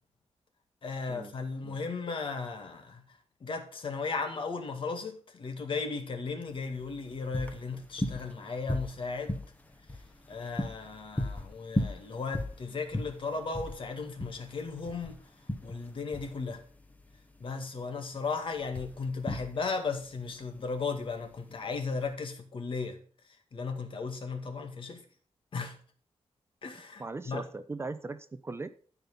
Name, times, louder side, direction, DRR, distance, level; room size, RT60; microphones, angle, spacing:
voice 1, 0.8-3.0 3.4-9.3 10.3-15.2 15.6-16.6 17.4-23.0 23.5-25.0 25.5-25.7 26.6-27.4, left 4 dB, 55° left, 2.0 m, -36 dB
sound 1, 6.5-22.1, left 1 dB, 15° left, 1.2 m, -38 dB
voice 2, 27.0-28.7, right 3 dB, 25° right, 0.6 m, -39 dB
13.5 x 5.5 x 5.4 m
wide cardioid pair, 165°, 11 cm